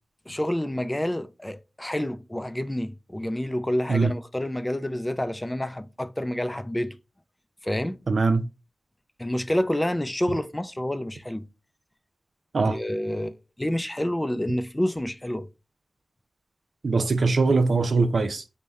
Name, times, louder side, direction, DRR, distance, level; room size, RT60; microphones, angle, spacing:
voice 1, 0.3-7.0 7.6-8.1 9.2-11.5 12.6-15.5, left 1 dB, 20° left, 0.4 m, -28 dB
voice 2, 8.1-8.5 12.5-12.8 16.8-18.4, right 3 dB, 75° right, 0.4 m, -22 dB
3.4 x 2.2 x 4.1 m
cardioid pair, 40°, 0 cm